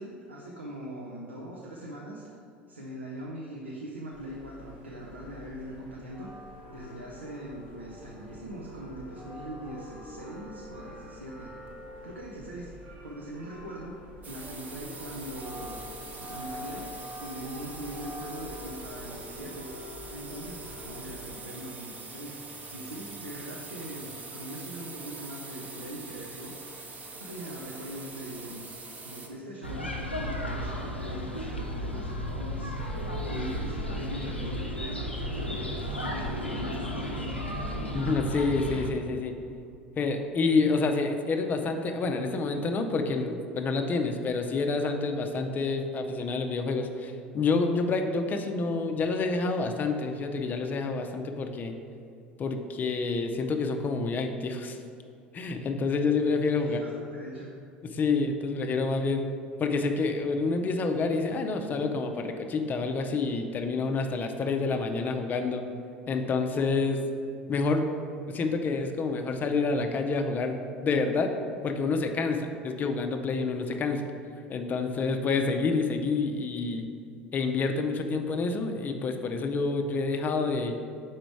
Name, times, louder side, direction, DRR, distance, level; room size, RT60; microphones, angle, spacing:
voice 1, 0.0-2.2 2.7-6.3 6.7-11.5 12.0-14.0 14.3-15.8 16.2-19.7 20.1-22.3 22.7-28.6 29.0-29.9 30.2-32.7 33.3-35.6 36.0-37.5 56.6-57.5, right 1 dB, 80° right, -4 dB, 0.6 m, -41 dB
sound 1, 4.1-21.3, left 1 dB, 60° right, 1.1 m, -45 dB
sound 2, 14.2-29.3, right 3 dB, 30° right, 0.8 m, -44 dB
sound 3, 29.6-38.9, equal, 85° left, 0.5 m, -33 dB
voice 2, 37.9-39.3 40.0-51.8 52.4-54.8 55.3-56.8 57.9-59.3 59.6-65.6 66.1-67.0 67.5-67.9 68.3-71.3 71.6-74.1 74.5-76.9 77.3-80.8, left 4 dB, 30° left, 5 dB, 0.5 m, -28 dB
5.0 x 4.4 x 4.6 m, 2.5 s
figure-of-eight pair, 70°, 6 cm